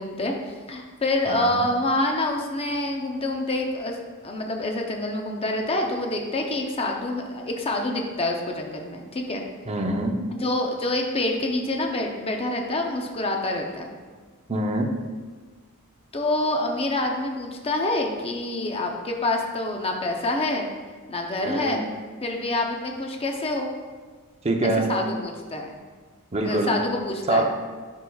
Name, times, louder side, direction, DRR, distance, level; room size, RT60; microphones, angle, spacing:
voice 1, 0.0-4.0 4.2-9.4 10.3-13.9 16.1-20.7 21.1-21.9 22.2-23.7 24.9-25.8 26.4-27.4, left 2 dB, 25° left, 2 dB, 0.6 m, -27 dB
voice 2, 1.3-1.6 9.7-10.1 14.5-14.9 21.4-21.8 24.4-24.9 26.3-26.7 27.3-27.4, right 1 dB, 30° right, 3 dB, 0.6 m, -24 dB
10.0 x 4.9 x 2.3 m, 1.4 s
head